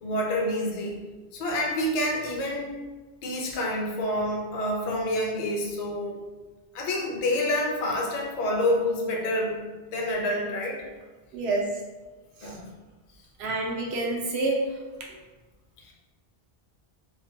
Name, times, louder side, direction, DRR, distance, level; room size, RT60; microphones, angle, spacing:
voice 1, 0.0-1.0 1.3-2.8 3.2-6.2 6.7-9.6 9.9-10.8 12.4-12.6 15.8-15.9, left 1 dB, 50° left, -1 dB, 0.5 m, -28 dB
voice 2, 11.3-11.6 12.4-12.5 13.4-14.6, right 3 dB, 85° right, -1 dB, 0.8 m, -27 dB
3.1 x 2.2 x 2.6 m, 1.3 s
omnidirectional pair, 1.0 m